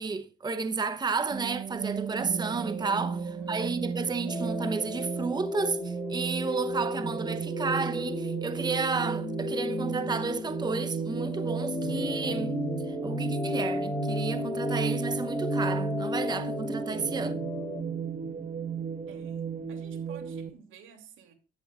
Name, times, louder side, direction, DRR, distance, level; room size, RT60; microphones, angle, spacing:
voice 1, 0.0-3.2 3.5-12.5 12.9-17.4, right 4 dB, 20° right, 0.8 m, -32 dB
sound 1, 1.3-20.5, right 5 dB, 40° right, 1.5 m, -34 dB
voice 2, 2.9-3.6 19.1-21.3, right 7 dB, 85° right, 2.8 m, -53 dB
sound 2, 4.3-17.8, left 3 dB, 15° left, 0.4 m, -36 dB
14.0 x 11.5 x 2.4 m
cardioid pair, 90°, 20 cm